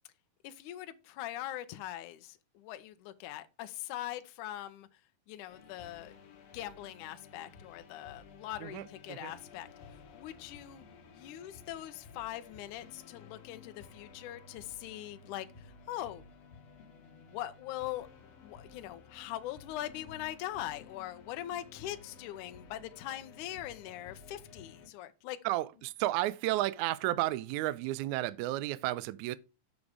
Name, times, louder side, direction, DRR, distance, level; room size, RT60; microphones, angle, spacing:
voice 1, 0.4-4.9 5.3-6.2 6.5-9.7 10.1-10.8 11.1-16.2 16.9-25.4, left 13 dB, 75° left, 2.0 m, -42 dB
sound 1, 5.5-24.9, left 4 dB, 55° left, 2.2 m, -54 dB
voice 2, 25.4-29.4, right 16 dB, 85° right, 1.7 m, -32 dB
7.3 x 6.2 x 4.8 m
omnidirectional pair, 4.0 m